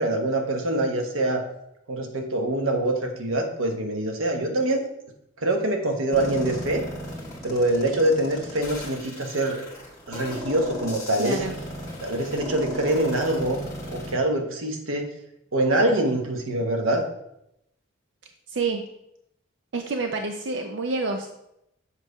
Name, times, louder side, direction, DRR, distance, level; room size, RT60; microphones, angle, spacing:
voice 1, 0.0-1.4 1.9-4.9 5.4-6.8 7.4-9.7 10.1-11.4 12.0-13.6 13.9-15.1 15.5-17.1, right 1 dB, 90° right, 3 dB, 1.1 m, -24 dB
sound 1, 6.1-14.1, equal, 15° left, 1.5 m, -36 dB
voice 2, 11.2-11.5 18.5-18.8 19.7-21.3, right 3 dB, 60° right, 4 dB, 0.5 m, -28 dB
7.3 x 3.3 x 5.3 m, 0.80 s
head